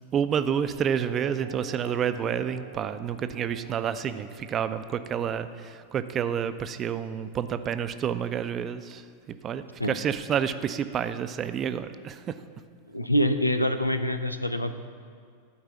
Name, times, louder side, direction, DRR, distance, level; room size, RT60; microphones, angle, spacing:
voice 1, 0.1-9.0 9.3-12.4, right 8 dB, 30° right, 12 dB, 0.4 m, -29 dB
sound 1, 1.0-5.9, right 5 dB, 60° right, 1.1 m, -46 dB
voice 2, 12.9-14.8, equal, 85° left, 9 dB, 0.5 m, -25 dB
12.5 x 4.8 x 7.0 m, 2.2 s
figure-of-eight pair, 90°, 0 cm